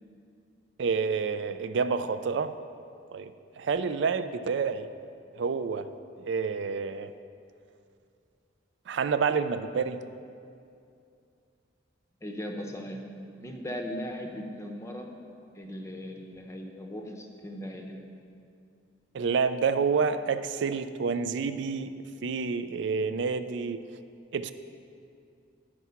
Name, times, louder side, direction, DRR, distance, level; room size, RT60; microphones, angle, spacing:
voice 1, 0.8-2.5 3.1-4.9 5.4-5.9 6.2-7.1 8.9-10.0 19.1-21.9 22.2-23.8 24.3-24.5, right 5 dB, 65° right, 11 dB, 0.4 m, -28 dB
voice 2, 12.2-13.1 13.4-15.1 15.5-18.1, equal, 15° left, 3 dB, 0.7 m, -38 dB
9.4 x 4.6 x 5.7 m, 2.5 s
head